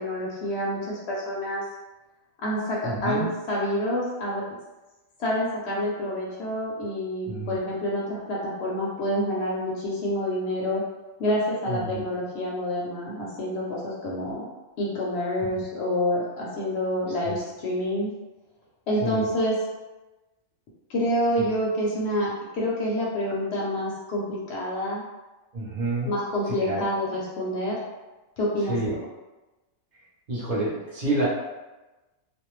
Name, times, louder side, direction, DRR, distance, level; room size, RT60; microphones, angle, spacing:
voice 1, 0.0-1.6 2.4-4.4 5.2-10.8 11.2-14.5 14.8-18.1 18.9-19.6 20.9-25.0 26.0-27.8 28.4-28.8, left 1 dB, 60° left, -4 dB, 0.8 m, -27 dB
voice 2, 2.8-3.3 7.3-7.6 11.7-12.0 17.2-17.4 19.0-19.2 21.4-21.5 25.5-26.1 26.5-26.8 28.7-28.9 30.3-31.3, right 2 dB, 40° right, -7 dB, 0.7 m, -28 dB
2.5 x 2.1 x 3.0 m, 1.1 s
omnidirectional pair, 1.4 m